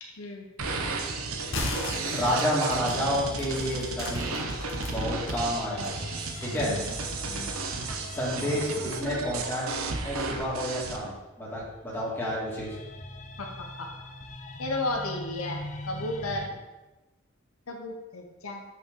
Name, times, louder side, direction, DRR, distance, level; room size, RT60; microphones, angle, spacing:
voice 1, 0.2-0.5 1.2-1.3 6.5-7.0 7.3-7.5 13.4-13.9 14.6-16.5 17.7-18.6, left 2 dB, 90° left, 2 dB, 1.0 m, -34 dB
sound 1, 0.6-11.0, right 3 dB, 90° right, 0.8 m, -33 dB
sound 2, 1.5-5.4 5.8-7.1, left 2 dB, 60° left, 1.3 m, -37 dB
sound 3, 1.8-10.7 11.6-16.5, left 1 dB, 35° left, 0.5 m, -43 dB
voice 2, 2.1-4.4 4.9-5.9 6.4-6.7 8.1-9.7 10.0-12.8, equal, 10° left, -7 dB, 2.1 m, -30 dB
7.8 x 5.5 x 3.8 m, 1.1 s
head